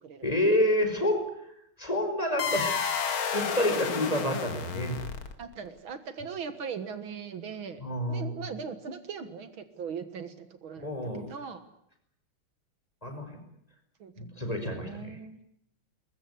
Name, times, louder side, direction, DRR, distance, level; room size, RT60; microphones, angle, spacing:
voice 1, 0.2-1.3 1.8-5.0 7.8-8.5 10.8-11.2 13.0-13.4 14.2-15.2, left 1 dB, 15° left, 5 dB, 5.4 m, -29 dB
sound 1, 2.4-5.5, left 6 dB, 75° left, 2.7 m, -31 dB
voice 2, 5.4-7.8 8.1-10.9 11.2-11.6 14.0-14.1 14.7-15.4, right 6 dB, 70° right, 10 dB, 2.4 m, -39 dB
21.5 x 21.5 x 9.7 m, 0.74 s
omnidirectional pair, 2.3 m